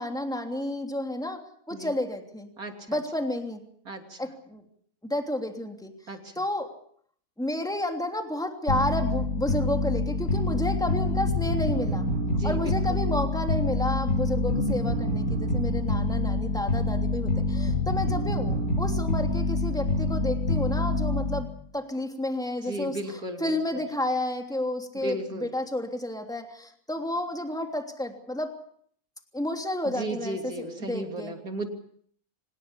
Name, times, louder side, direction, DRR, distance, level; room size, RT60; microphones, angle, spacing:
voice 1, 0.0-1.4 1.7-2.5 2.9-3.6 4.2-4.6 5.0-5.9 6.3-6.7 7.4-12.0 12.4-28.5 29.3-31.3, left 1 dB, ahead, 3 dB, 3.1 m, -31 dB
voice 2, 2.6-3.0 3.9-4.2 6.1-6.4 12.3-12.8 22.7-23.8 25.0-25.5 29.9-31.7, right 1 dB, 80° right, 4 dB, 3.7 m, -35 dB
sound 1, 8.7-21.6, left 2 dB, 80° left, 8.2 m, -26 dB
25.5 x 20.0 x 7.0 m, 0.62 s
omnidirectional pair, 1.5 m